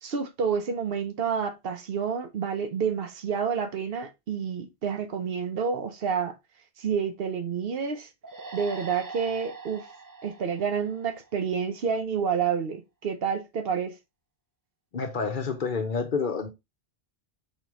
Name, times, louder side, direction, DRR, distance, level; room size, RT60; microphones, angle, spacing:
voice 1, 0.0-6.3 6.8-8.1 8.5-9.9 10.2-13.9, right 6 dB, 70° right, 0.9 m, -29 dB
sound 1, 8.2-11.7, right 3 dB, 30° right, 0.3 m, -43 dB
voice 2, 14.9-16.5, left 5 dB, 55° left, 0.9 m, -28 dB
4.2 x 3.7 x 3.0 m
omnidirectional pair, 1.1 m